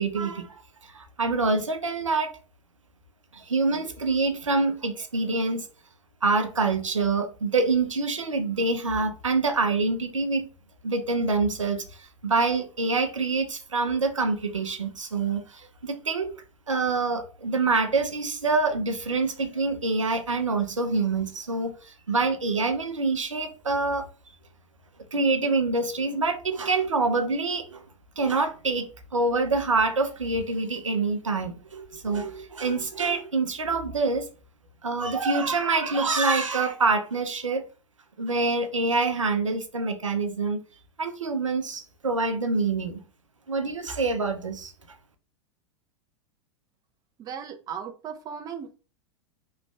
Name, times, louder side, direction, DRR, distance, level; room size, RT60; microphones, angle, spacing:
voice 1, 0.0-2.4 3.3-5.7 6.2-10.5 10.8-16.4 16.7-24.1 25.1-27.8 28.2-34.3 34.8-37.6 38.2-40.6 41.0-43.0 43.5-44.7, right 3 dB, 85° right, 0.6 m, -26 dB
voice 2, 47.2-48.8, right 7 dB, 25° right, 0.5 m, -37 dB
3.1 x 2.5 x 3.3 m
figure-of-eight pair, 90°, 16 cm